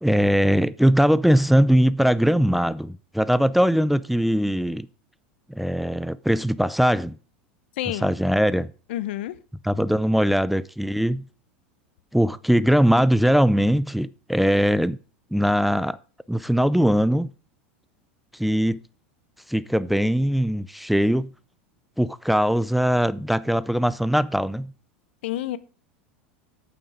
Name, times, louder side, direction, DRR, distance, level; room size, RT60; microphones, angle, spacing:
voice 1, 0.0-4.9 5.5-7.2 7.9-8.7 9.6-11.2 12.1-15.0 15.3-16.0 16.3-17.3 18.3-18.8 19.5-21.3 22.0-24.7, equal, ahead, 0.5 m, -21 dB
voice 2, 7.8-8.1 8.9-9.3 25.2-25.6, left 13 dB, 70° left, 0.9 m, -28 dB
8.9 x 8.6 x 5.0 m
hypercardioid pair, 90°, 6 cm